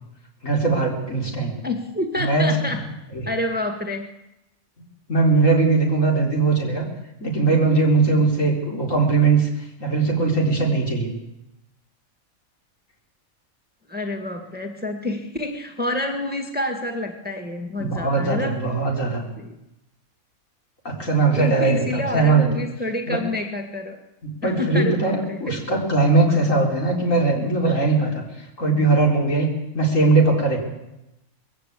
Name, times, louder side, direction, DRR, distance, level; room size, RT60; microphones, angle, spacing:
voice 1, 0.4-1.5 2.2-2.7 3.1-3.3 5.1-6.9 7.2-9.5 9.8-11.1 17.8-19.2 20.8-22.5 23.1-23.2 24.2-28.2 28.6-29.5 29.7-30.6, right 3 dB, 60° left, 0 dB, 4.5 m, -20 dB
voice 2, 1.6-2.8 3.3-4.1 13.9-18.6 19.4-19.6 21.3-24.0 24.4-25.5, left 2 dB, 5° right, 4 dB, 1.8 m, -28 dB
20.5 x 16.0 x 8.3 m, 0.91 s
omnidirectional pair, 1.5 m